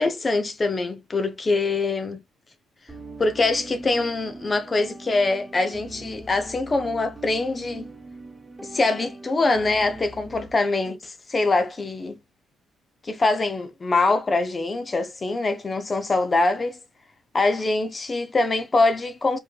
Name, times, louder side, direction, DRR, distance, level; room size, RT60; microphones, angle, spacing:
voice 1, 0.0-2.2 3.2-7.9 8.7-12.2 13.0-16.8 17.3-19.4, left 3 dB, 30° left, 0.5 m, -23 dB
sound 1, 2.9-10.5, right 2 dB, 20° right, 0.8 m, -41 dB
4.5 x 3.0 x 2.3 m
cardioid pair, 90°, 0 cm